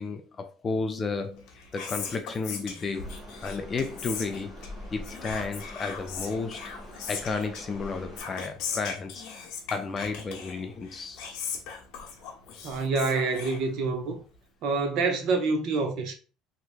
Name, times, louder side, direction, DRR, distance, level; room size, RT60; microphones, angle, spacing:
voice 1, 0.0-4.6 4.9-6.7 7.1-9.2 9.7-11.2, left 4 dB, 20° left, 0.3 m, -33 dB
Whispering, 1.3-14.2, left 6 dB, 55° left, 0.9 m, -40 dB
sound 1, 2.9-8.2, left 1 dB, 10° right, 1.4 m, -44 dB
voice 2, 12.6-14.2 14.6-16.2, right 3 dB, 45° right, 0.7 m, -27 dB
3.4 x 2.9 x 2.5 m
cardioid pair, 180°, 0 cm